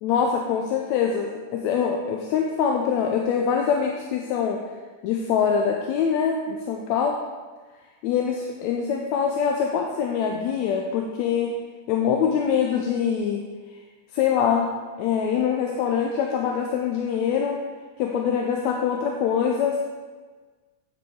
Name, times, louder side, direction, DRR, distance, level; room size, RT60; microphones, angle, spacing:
voice 1, 0.0-4.6 5.0-7.1 8.0-11.5 11.9-13.4 14.1-14.7 15.0-17.6 18.0-19.8, left 7 dB, 80° left, 1 dB, 1.9 m, -24 dB
9.9 x 5.4 x 4.7 m, 1.4 s
omnidirectional pair, 3.3 m